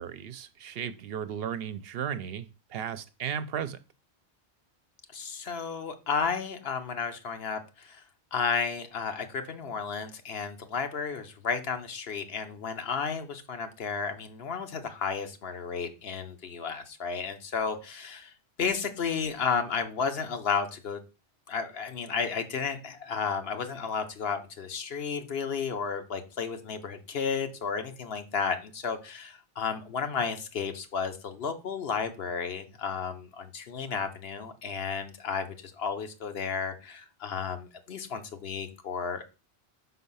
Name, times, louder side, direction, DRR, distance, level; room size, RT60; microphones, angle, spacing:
voice 1, 0.0-2.5 2.7-3.8, right 8 dB, 70° right, 13 dB, 0.8 m, -35 dB
voice 2, 5.1-8.0 8.3-18.3 18.6-21.0 21.5-39.2, left 5 dB, 70° left, 8 dB, 1.1 m, -33 dB
5.4 x 4.0 x 5.5 m, 0.31 s
omnidirectional pair, 1.1 m